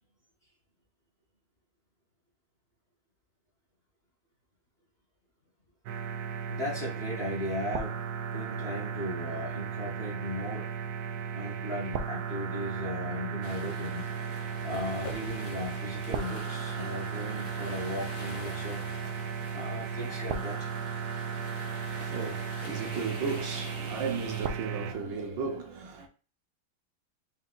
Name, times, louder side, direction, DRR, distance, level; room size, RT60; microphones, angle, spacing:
sound 1, 5.9-24.9, right 6 dB, 85° right, 0.8 m, -35 dB
voice 1, 6.5-8.0 8.3-10.7 11.3-14.1 14.6-18.8 19.5-20.7, left 1 dB, 40° left, 1.0 m, -37 dB
sound 2, 13.4-24.5, left 5 dB, 75° left, 1.5 m, -46 dB
voice 2, 21.8-26.1, right 5 dB, 70° right, 1.4 m, -35 dB
4.4 x 2.6 x 3.8 m
omnidirectional pair, 2.3 m